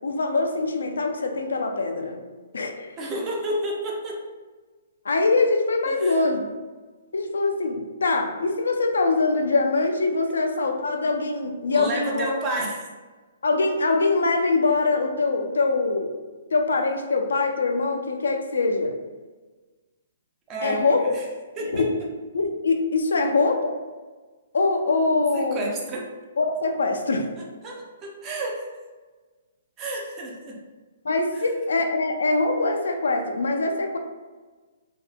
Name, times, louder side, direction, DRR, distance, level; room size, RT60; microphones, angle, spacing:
voice 1, 0.0-2.2 2.5-3.0 5.0-6.4 7.1-12.3 13.4-16.1 16.5-18.9 20.6-21.1 21.6-21.9 22.3-23.7 24.5-25.6 26.4-27.3 31.0-34.0, left 3 dB, 85° left, 4 dB, 0.3 m, -23 dB
voice 2, 3.0-4.2 5.9-6.2 11.7-12.8 20.5-21.2 21.6-21.9 25.3-26.1 27.4-28.7 29.8-30.6, right 1 dB, 25° right, -1 dB, 0.5 m, -30 dB
2.6 x 2.3 x 2.2 m, 1.3 s
hypercardioid pair, 150°, 0 cm